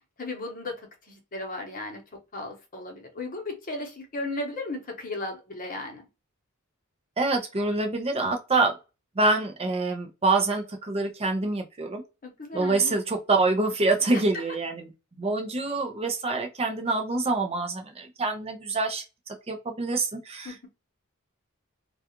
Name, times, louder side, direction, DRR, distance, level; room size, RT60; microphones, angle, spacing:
voice 1, 0.2-2.0 2.3-6.1 12.2-12.9 14.1-14.2 20.4-20.7, left 2 dB, 40° left, 0.9 m, -35 dB
voice 2, 7.2-8.7 9.2-12.0 12.5-14.9 15.2-20.7, right 3 dB, 30° right, 0.5 m, -26 dB
2.3 x 2.3 x 2.8 m
head